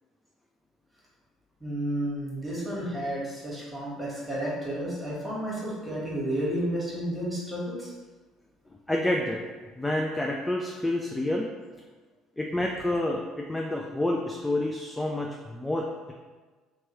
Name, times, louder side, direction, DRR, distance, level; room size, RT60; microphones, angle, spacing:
voice 1, 1.6-7.9, right 1 dB, 5° right, -6 dB, 1.4 m, -31 dB
voice 2, 8.9-9.4 9.8-11.5 12.4-16.1, left 1 dB, 10° left, 0 dB, 0.3 m, -28 dB
3.0 x 2.3 x 3.0 m, 1.3 s
supercardioid pair, 80°, 0 cm